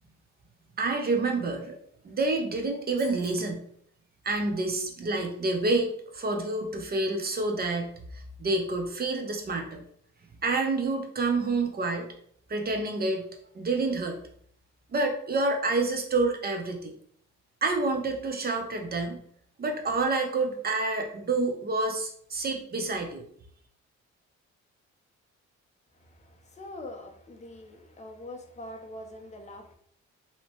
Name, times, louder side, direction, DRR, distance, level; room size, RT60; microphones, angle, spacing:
voice 1, 0.8-1.8 2.0-3.7 4.2-7.9 8.4-9.8 10.4-12.1 12.5-13.3 13.5-14.2 14.9-16.8 17.6-19.2 19.6-23.2, right 3 dB, 30° right, 4 dB, 0.6 m, -28 dB
sound 1, 3.0-3.6, right 2 dB, 60° right, 0.9 m, -49 dB
voice 2, 26.0-29.7, left 1 dB, 25° left, 3 dB, 0.5 m, -44 dB
2.8 x 2.1 x 2.8 m, 0.63 s
cardioid pair, 90°, 30 cm